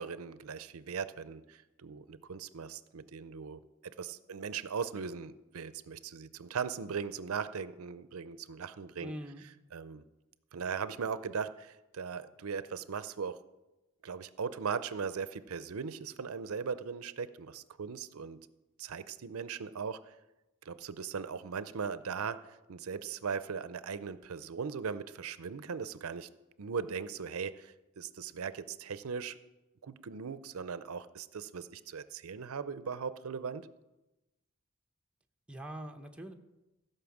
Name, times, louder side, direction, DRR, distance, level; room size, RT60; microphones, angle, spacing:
voice 1, 0.0-3.6 4.0-9.1 9.7-10.0 10.5-13.4 14.0-18.4 18.8-20.1 20.7-22.4 22.7-26.3 26.6-29.4 29.8-33.7, right 6 dB, 85° right, 14 dB, 0.5 m, -39 dB
voice 2, 9.0-9.4 35.5-36.3, equal, 5° right, 3 dB, 0.8 m, -43 dB
15.5 x 5.6 x 7.2 m, 1.0 s
head